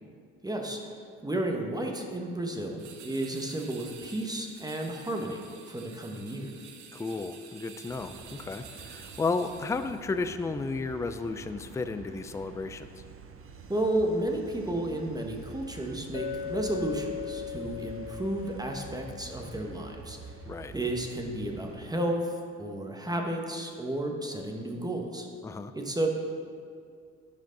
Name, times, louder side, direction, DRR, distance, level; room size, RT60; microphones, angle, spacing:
voice 1, 0.4-0.9 1.2-6.5 13.7-20.3 20.7-25.3 25.7-26.1, right 1 dB, 10° right, 2 dB, 1.2 m, -32 dB
sound 1, 2.8-10.1, right 6 dB, 75° right, 1.0 m, -50 dB
voice 2, 6.9-13.0 20.5-20.7 25.4-25.7, left 3 dB, 10° left, 10 dB, 0.4 m, -33 dB
sound 2, 7.9-21.9, right 5 dB, 45° right, 0.8 m, -47 dB
Chink clink, 16.1-20.6, left 9 dB, 60° left, 0.6 m, -39 dB
10.5 x 5.2 x 3.9 m, 2.2 s
hypercardioid pair, 60°, 31 cm